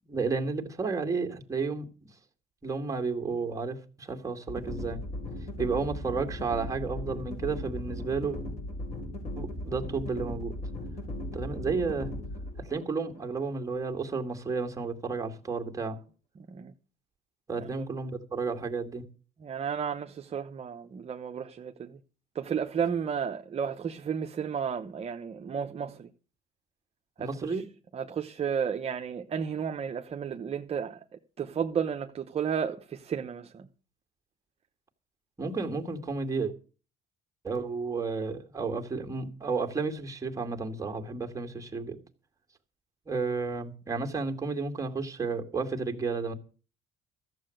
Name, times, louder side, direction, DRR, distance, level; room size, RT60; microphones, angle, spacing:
voice 1, 0.1-2.1 2.6-5.0 5.6-8.4 9.4-10.5 11.3-12.1 12.6-16.0 17.5-19.0 27.2-27.6 35.4-36.5 37.4-42.0 43.1-46.3, right 4 dB, 20° right, 2.2 m, -32 dB
sound 1, 4.5-14.5, left 1 dB, 40° left, 4.0 m, -38 dB
voice 2, 16.4-16.7 17.6-17.8 19.4-22.0 22.3-26.1 27.2-27.6 27.9-31.0 31.4-33.7, right 7 dB, 35° right, 0.9 m, -33 dB
14.0 x 7.6 x 7.8 m
cardioid pair, 110°, 17 cm